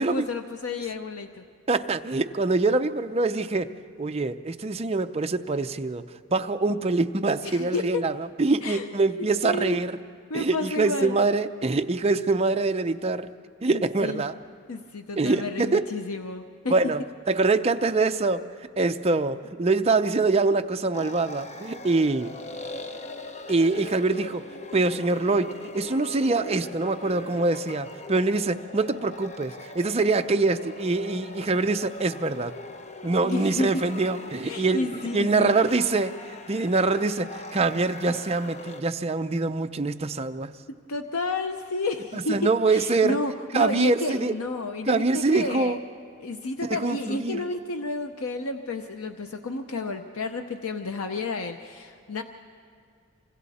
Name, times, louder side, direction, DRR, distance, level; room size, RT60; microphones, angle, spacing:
voice 1, 0.0-1.4 7.4-8.0 8.6-8.9 9.2-9.8 10.3-11.2 13.7-14.2 14.7-16.7 33.2-33.8 34.4-35.5 40.9-45.8 46.2-52.2, left 2 dB, 90° left, 6 dB, 0.8 m, -31 dB
voice 2, 1.7-3.7 4.0-6.0 6.3-10.0 10.3-13.3 13.6-14.3 15.2-15.8 16.7-17.0 17.3-18.4 18.8-22.3 23.5-24.4 24.7-32.5 33.0-40.5 42.1-43.2 43.5-44.3 44.9-45.8 46.6-47.4, right 3 dB, 30° right, 8 dB, 0.5 m, -24 dB
sound 1, 20.9-38.8, left 2 dB, 35° left, 0.9 m, -40 dB
27.5 x 25.5 x 4.2 m, 2.2 s
head